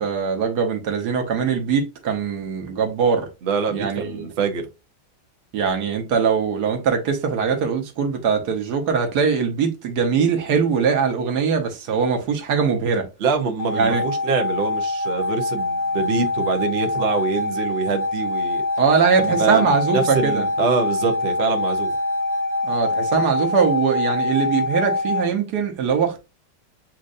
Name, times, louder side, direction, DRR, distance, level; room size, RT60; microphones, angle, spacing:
voice 1, 0.0-3.3 3.7-4.3 5.5-13.1 13.7-14.0 18.8-20.4 22.6-26.2, right 6 dB, 60° right, 1.3 m, -21 dB
voice 2, 3.4-4.7 13.2-18.6 19.2-21.9, right 5 dB, 90° right, 0.5 m, -24 dB
sound 1, 13.6-25.3, left 2 dB, 40° left, 0.7 m, -24 dB
7.4 x 2.6 x 2.5 m
omnidirectional pair, 2.2 m